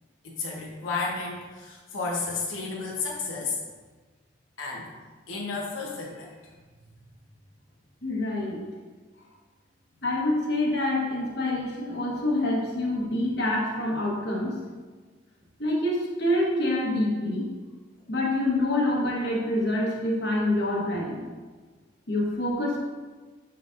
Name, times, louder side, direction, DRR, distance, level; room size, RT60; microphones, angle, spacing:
voice 1, 0.2-3.6 4.6-4.9 5.3-6.5, left 4 dB, 85° left, -4 dB, 1.1 m, -32 dB
voice 2, 8.0-8.6 10.0-14.5 15.6-17.4 18.1-21.2 22.1-22.8, left 1 dB, 55° left, -3 dB, 1.3 m, -26 dB
7.1 x 5.9 x 2.6 m, 1.4 s
head